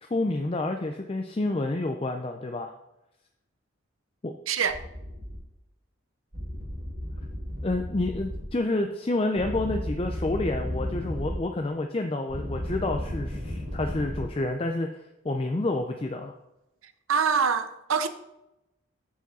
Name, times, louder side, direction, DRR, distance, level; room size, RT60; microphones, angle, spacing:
voice 1, 0.0-2.7 4.2-4.3 7.6-15.0 15.2-16.3, left 2 dB, 25° left, 4 dB, 0.5 m, -29 dB
voice 2, 4.5-4.8 17.1-18.1, right 6 dB, 85° right, 10 dB, 0.7 m, -24 dB
sound 1, 4.7-5.4 6.3-8.5 9.4-11.4 12.3-14.2, equal, 40° right, 2.3 m, -34 dB
14.0 x 4.9 x 4.2 m, 0.91 s
head